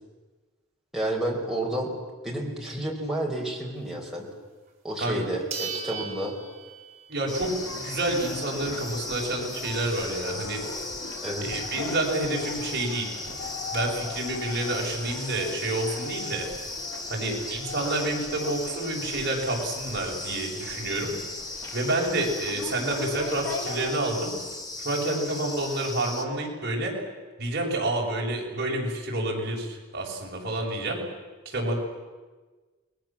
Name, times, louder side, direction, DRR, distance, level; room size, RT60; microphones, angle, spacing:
voice 1, 0.9-1.9 2.2-4.3 4.8-6.3 11.2-11.6 17.1-17.6, right 1 dB, ahead, -3 dB, 5.0 m, -31 dB
sound 1, 4.7-4.8 5.5-7.3 7.7-7.8 12.4-12.5 12.7-12.8 13.3-13.8, right 6 dB, 35° right, 3.9 m, -37 dB
voice 2, 7.1-10.6 11.4-13.1 13.7-16.5 17.1-21.1 21.7-24.3 24.8-26.9 27.4-31.0 31.5-31.7, right 1 dB, 50° right, -2 dB, 7.2 m, -29 dB
sound 2, 7.3-23.9, left 3 dB, 70° left, 3.5 m, -40 dB
sound 3, 7.3-26.3, left 2 dB, 20° left, 2.0 m, -37 dB
29.5 x 21.0 x 7.5 m, 1.3 s
head